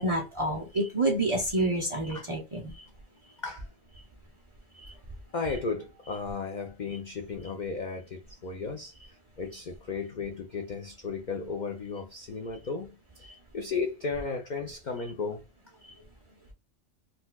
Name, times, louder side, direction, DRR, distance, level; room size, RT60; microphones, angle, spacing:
voice 1, 0.0-2.8, right 1 dB, 45° right, 0.4 m, -28 dB
voice 2, 5.3-15.5, left 4 dB, 75° left, 0.4 m, -35 dB
3.9 x 2.2 x 2.2 m
omnidirectional pair, 1.4 m